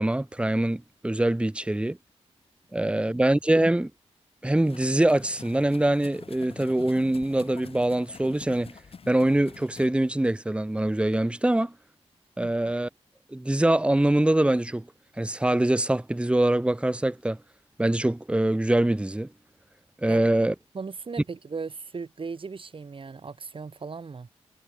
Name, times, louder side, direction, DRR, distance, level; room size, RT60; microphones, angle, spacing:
voice 1, 0.0-2.0 2.7-3.9 4.4-8.8 9.1-11.7 12.4-12.9 13.3-14.9 15.2-17.4 17.8-19.3 20.0-20.5, right 1 dB, 10° right, 0.8 m, -24 dB
sound 1, 4.5-9.9, left 5 dB, 55° left, 4.0 m, -47 dB
voice 2, 20.7-24.3, right 4 dB, 50° right, 3.4 m, -37 dB
cardioid pair, 65°, 12 cm